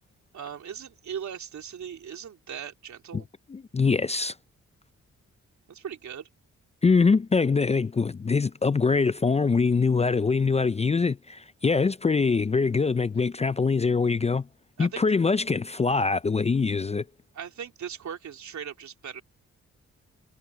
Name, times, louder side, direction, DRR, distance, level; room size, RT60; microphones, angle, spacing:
voice 1, 0.3-3.3 5.7-6.3 14.8-15.1 17.3-19.2, right 8 dB, 75° right, 3.6 m, -38 dB
voice 2, 3.5-4.3 6.8-14.4 14.8-17.0, left 4 dB, 20° left, 0.4 m, -23 dB
cardioid pair, 80°, 29 cm